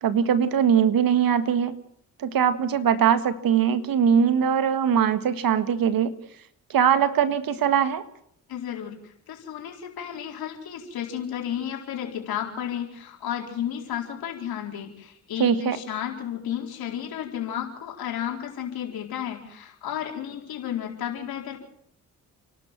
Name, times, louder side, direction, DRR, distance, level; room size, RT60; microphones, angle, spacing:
voice 1, 0.0-1.8 2.2-6.1 6.7-8.0 15.4-15.8, right 8 dB, 65° right, 11 dB, 1.8 m, -21 dB
voice 2, 8.5-21.6, left 10 dB, 75° left, 2 dB, 4.4 m, -33 dB
29.5 x 12.0 x 7.5 m, 0.72 s
supercardioid pair, 50°, 37 cm